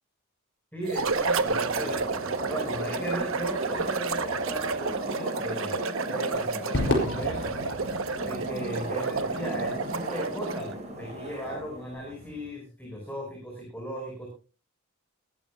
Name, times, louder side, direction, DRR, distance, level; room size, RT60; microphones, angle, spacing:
voice 1, 0.7-2.0 2.5-7.6 8.2-14.3, right 1 dB, 10° left, -2 dB, 5.7 m, -37 dB
sound 1, 0.8-10.7, right 4 dB, 65° right, 1.1 m, -31 dB
sound 2, 0.9-12.5, right 1 dB, 30° right, 6.1 m, -36 dB
Crowd / Fireworks, 6.7-11.2, left 1 dB, 55° left, 6.1 m, -33 dB
21.5 x 13.5 x 2.4 m, 0.34 s
head